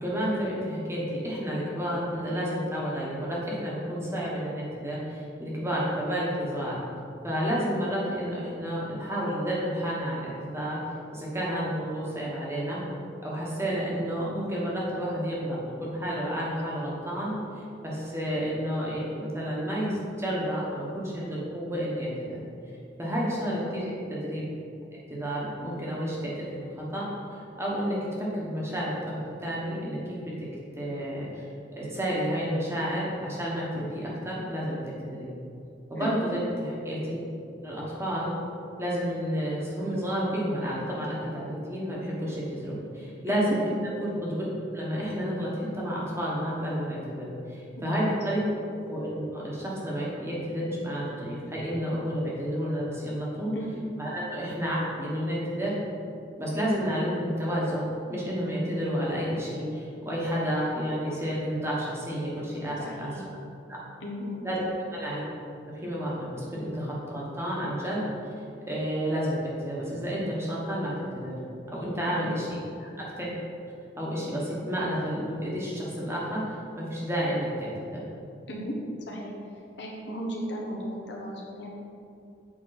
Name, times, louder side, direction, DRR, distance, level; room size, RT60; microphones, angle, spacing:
voice 1, 0.0-6.8 7.2-10.8 11.1-12.8 13.2-22.4 23.0-24.5 24.9-27.1 27.6-30.4 30.8-31.4 31.7-35.3 35.9-37.2 37.6-38.3 38.8-44.5 44.7-48.4 48.7-53.5 54.0-55.8 56.4-63.1 63.7-63.8 64.4-64.6 64.9-65.2 65.6-68.0 68.7-71.3 71.7-73.3 74.0-78.0, equal, 15° right, -5 dB, 1.4 m, -31 dB
voice 2, 23.4-23.8 36.0-36.4 43.3-43.6 47.7-48.1 53.5-53.7 62.8-63.2 64.0-64.4 72.1-72.4 78.5-78.7 79.1-79.3 79.8-81.7, equal, 70° left, -3 dB, 1.3 m, -36 dB
8.0 x 5.0 x 4.1 m, 2.5 s
head